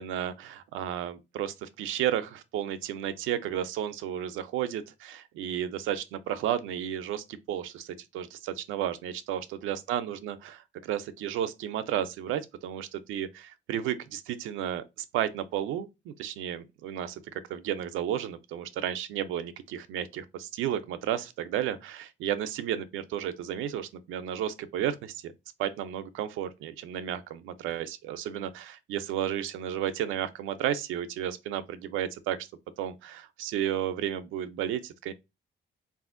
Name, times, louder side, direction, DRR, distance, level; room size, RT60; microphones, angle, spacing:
voice 1, 0.0-17.2 17.5-25.3 25.6-32.5 32.8-35.1, right 10 dB, 85° right, 0.4 m, -33 dB
3.4 x 2.4 x 2.4 m
cardioid pair, 90°, 20 cm